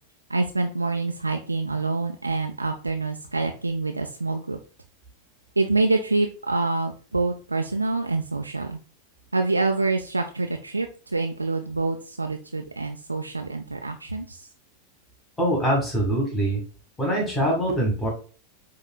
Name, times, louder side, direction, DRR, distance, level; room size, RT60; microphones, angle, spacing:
voice 1, 0.3-4.6 5.6-8.8 9.3-14.4, right 3 dB, 80° right, 4 dB, 0.4 m, -26 dB
voice 2, 15.4-16.6 17.0-18.1, right 1 dB, 10° left, -2 dB, 1.8 m, -23 dB
7.5 x 2.8 x 2.3 m, 0.38 s
figure-of-eight pair, 90°, 0 cm